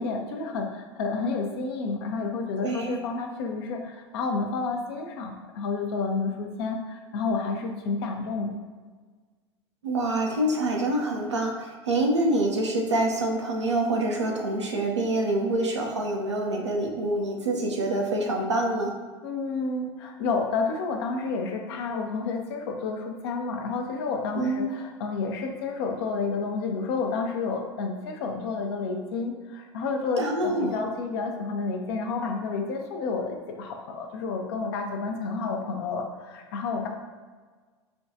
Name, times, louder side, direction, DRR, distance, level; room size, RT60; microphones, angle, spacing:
voice 1, 0.0-8.5 19.2-36.9, left 4 dB, 65° left, 3 dB, 0.6 m, -30 dB
voice 2, 2.6-3.0 9.8-18.9 24.3-24.7 30.2-30.8, right 1 dB, 90° right, 0 dB, 0.6 m, -26 dB
4.4 x 2.3 x 2.7 m, 1.4 s
figure-of-eight pair, 75°, 14 cm